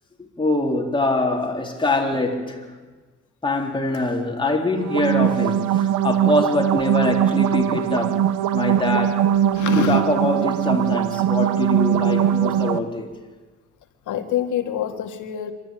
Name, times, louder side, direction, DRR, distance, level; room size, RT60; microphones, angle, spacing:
voice 1, 0.4-2.6 3.4-8.2 8.5-9.3 9.8-13.1, left 2 dB, 15° left, 1 dB, 3.7 m, -23 dB
sound 1, 4.8-12.8, right 10 dB, 90° right, 0.9 m, -21 dB
voice 2, 9.5-10.0 11.9-12.2 14.1-15.5, left 9 dB, 80° left, 6 dB, 2.1 m, -26 dB
25.5 x 13.0 x 9.1 m, 1.3 s
cardioid pair, 90°, 30 cm